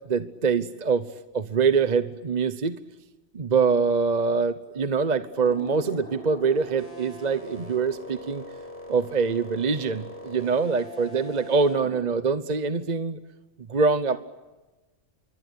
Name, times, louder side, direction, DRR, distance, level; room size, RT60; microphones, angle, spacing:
voice 1, 0.1-1.0 1.3-2.8 3.3-8.4 8.9-13.2 13.7-14.2, right 5 dB, 45° right, 12 dB, 1.1 m, -24 dB
sound 1, 5.3-12.0, left 1 dB, 35° left, 7.1 m, -41 dB
27.5 x 23.5 x 8.5 m, 1.2 s
omnidirectional pair, 1.1 m